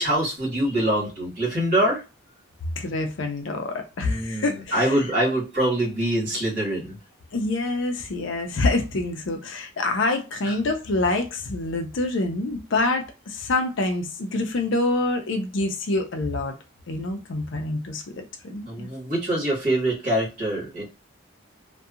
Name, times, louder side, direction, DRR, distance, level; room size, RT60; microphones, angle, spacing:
voice 1, 0.0-2.0 4.0-6.9 10.4-10.5 18.6-20.8, right 1 dB, 45° right, 1.6 m, -24 dB
voice 2, 2.8-5.0 7.3-16.6 16.9-18.9, left 2 dB, 65° left, 0.5 m, -26 dB
2.7 x 2.2 x 2.4 m
head